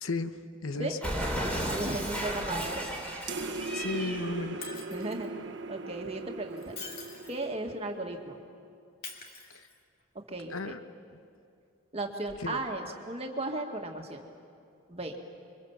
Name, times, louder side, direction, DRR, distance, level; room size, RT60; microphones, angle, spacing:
voice 1, 0.0-0.9 3.7-4.7 10.5-10.8 12.4-12.6, left 3 dB, 90° left, 10 dB, 1.0 m, -34 dB
voice 2, 0.7-2.9 4.9-5.3 5.7-6.8 7.3-8.4 10.3-10.7 11.9-14.2 14.9-15.2, right 2 dB, 30° right, 2 dB, 1.9 m, -36 dB
Cat, 1.0-4.3, equal, 5° left, 2.9 m, -34 dB
sound 1, 3.3-8.2, right 3 dB, 60° right, 1.2 m, -39 dB
Shatter, 4.6-5.3 6.5-7.5 9.0-10.0 12.3-12.4, left 4 dB, 45° left, 2.6 m, -45 dB
26.5 x 24.0 x 7.3 m, 2.4 s
head